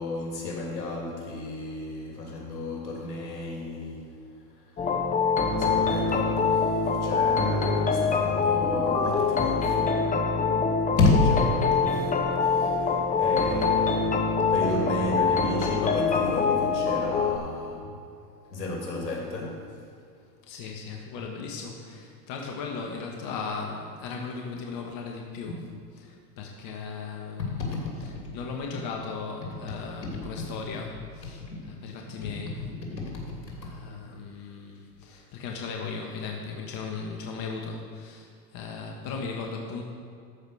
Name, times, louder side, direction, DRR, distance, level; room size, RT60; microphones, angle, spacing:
voice 1, 0.0-4.0 5.6-9.9 11.0-12.1 12.4-17.9 18.5-19.6 27.4-28.1 31.5-31.6 32.2-32.3 32.9-33.0, left 2 dB, 90° left, -2 dB, 3.1 m, -30 dB
sound 1, 4.8-17.4, left 5 dB, 15° left, 0.8 m, -24 dB
voice 2, 20.4-25.6 26.0-27.7 28.3-32.6 33.5-39.8, left 5 dB, 45° left, 1 dB, 1.6 m, -37 dB
13.5 x 5.3 x 6.3 m, 2.3 s
hypercardioid pair, 105°, 49 cm